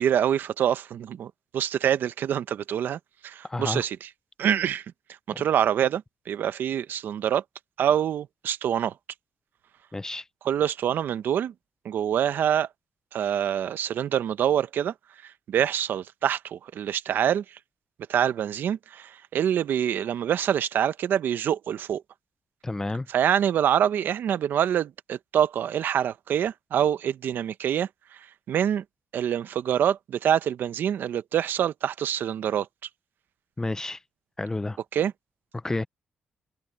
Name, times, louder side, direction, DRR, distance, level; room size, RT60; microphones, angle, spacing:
voice 1, 0.0-4.1 4.4-4.8 5.4-7.4 7.8-8.9 10.4-11.5 11.8-12.7 13.1-14.9 15.2-17.6 18.1-22.0 23.1-27.9 28.5-28.8 29.1-32.7 34.9-35.1, right 9 dB, 70° right, 0.9 m, -25 dB
voice 2, 3.5-3.8 9.9-10.2 22.6-23.1 33.6-34.0 34.4-34.8 35.6-35.9, left 2 dB, 15° left, 0.6 m, -30 dB
cardioid pair, 95°, 4 cm